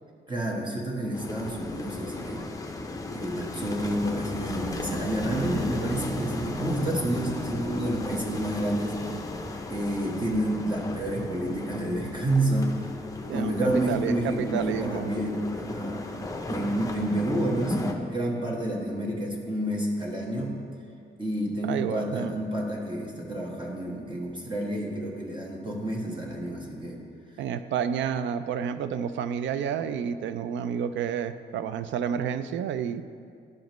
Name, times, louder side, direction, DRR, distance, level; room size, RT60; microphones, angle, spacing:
voice 1, 0.3-2.5 3.1-9.0 9.7-12.8 13.3-16.0 16.5-20.6 21.2-27.0, right 1 dB, 25° right, -2 dB, 1.4 m, -29 dB
sound 1, 1.1-17.9, left 2 dB, 15° left, 0.6 m, -35 dB
sound 2, 13.2-20.9, equal, 5° right, 1.3 m, -50 dB
voice 2, 13.3-15.1 21.7-22.3 27.4-33.0, right 8 dB, 70° right, 11 dB, 0.4 m, -30 dB
11.5 x 5.0 x 3.1 m, 2.3 s
cardioid pair, 90°, 20 cm